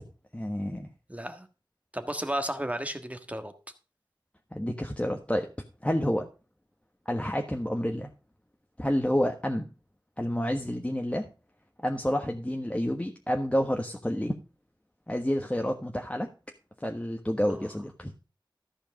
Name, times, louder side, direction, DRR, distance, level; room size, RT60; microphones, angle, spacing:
voice 1, 0.3-0.9 4.5-5.5 5.8-6.3 7.1-8.1 8.8-9.7 10.2-11.3 11.8-14.3 15.1-16.3 16.8-18.1, equal, 15° left, 1.3 m, -29 dB
voice 2, 1.1-1.5 1.9-3.5 17.4-17.7, right 1 dB, 15° right, 1.6 m, -33 dB
14.0 x 5.0 x 6.4 m
wide cardioid pair, 40°, 8 cm